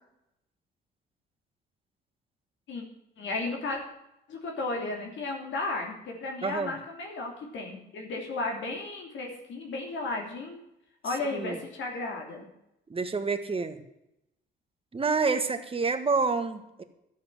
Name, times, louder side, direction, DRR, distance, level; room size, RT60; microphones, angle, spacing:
voice 1, 3.2-3.8 4.3-10.6 11.0-12.5, left 3 dB, 70° left, 1 dB, 2.9 m, -34 dB
voice 2, 6.4-6.7 11.3-11.6 12.9-13.8 14.9-16.8, right 4 dB, 30° right, 8 dB, 1.5 m, -28 dB
11.5 x 8.1 x 7.6 m, 0.83 s
cardioid pair, 90°, 20 cm